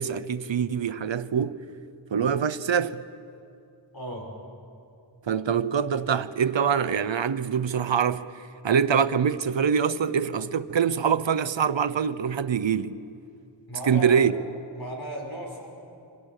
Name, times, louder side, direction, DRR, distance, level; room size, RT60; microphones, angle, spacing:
voice 1, 0.0-1.6 2.1-3.0 5.3-8.3 8.6-13.0 13.9-14.4, right 7 dB, 70° right, 0.9 m, -24 dB
voice 2, 3.9-4.3 13.7-14.2 14.7-15.7, equal, 50° left, 6.3 m, -36 dB
27.5 x 25.0 x 6.7 m
wide cardioid pair, 75°, 47 cm